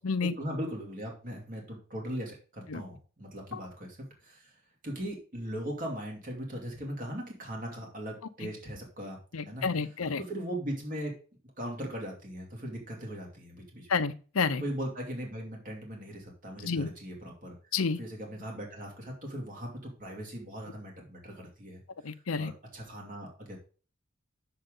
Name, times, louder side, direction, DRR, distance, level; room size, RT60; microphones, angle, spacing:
voice 1, 0.2-4.5 4.8-9.2 9.5-9.6 10.2-11.1 11.6-13.9 14.6-17.5 18.0-21.8 22.4-23.6, equal, 40° right, 0 dB, 2.7 m, -39 dB
voice 2, 9.3-10.2 13.9-14.6 16.6-16.9 17.7-18.0 22.0-22.5, left 5 dB, 75° left, 12 dB, 0.7 m, -30 dB
7.9 x 6.7 x 3.8 m, 0.37 s
head